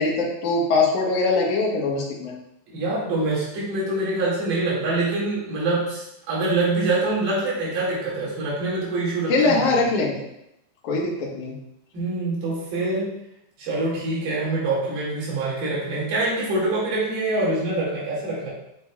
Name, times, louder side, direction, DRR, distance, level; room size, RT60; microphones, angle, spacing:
voice 1, 0.0-2.3 9.3-10.2 10.8-11.5, left 3 dB, 60° left, -3 dB, 2.4 m, -22 dB
voice 2, 2.7-9.7 11.9-13.2 13.6-18.5, right 2 dB, 70° right, -7 dB, 4.1 m, -25 dB
7.9 x 6.4 x 2.4 m, 0.82 s
omnidirectional pair, 4.7 m